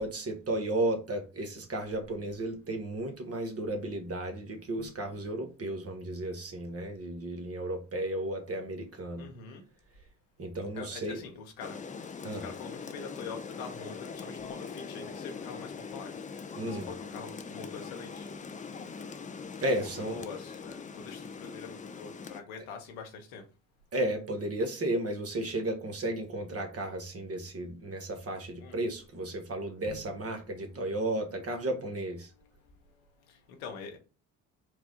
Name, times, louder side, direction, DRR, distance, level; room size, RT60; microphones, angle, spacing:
voice 1, 0.0-9.3 10.4-11.2 12.2-12.5 16.6-16.9 19.6-20.2 22.6-22.7 23.9-32.3, right 1 dB, 35° right, 1.3 m, -34 dB
voice 2, 4.8-5.1 9.2-9.6 10.7-11.8 12.4-18.3 19.8-23.4 28.6-28.8 29.9-30.0 32.4-32.5 33.3-34.0, left 5 dB, 80° left, 1.1 m, -44 dB
Rain, 11.6-22.4, left 5 dB, 20° left, 0.5 m, -42 dB
4.7 x 2.3 x 3.7 m
hypercardioid pair, 55°, 41 cm